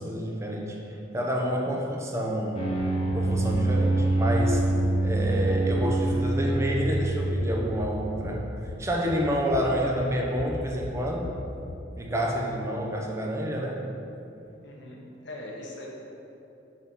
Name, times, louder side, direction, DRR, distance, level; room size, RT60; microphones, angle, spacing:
voice 1, 0.0-2.6 3.1-4.7 5.0-8.5 8.8-11.3 12.0-13.8, equal, 15° right, -1 dB, 0.7 m, -28 dB
sound 1, 2.5-7.8, right 2 dB, 30° left, 0.9 m, -25 dB
sound 2, 3.1-11.8, left 2 dB, 70° left, 0.5 m, -39 dB
voice 2, 14.6-15.9, left 1 dB, 90° left, -2 dB, 1.1 m, -41 dB
5.9 x 4.1 x 6.1 m, 2.8 s
head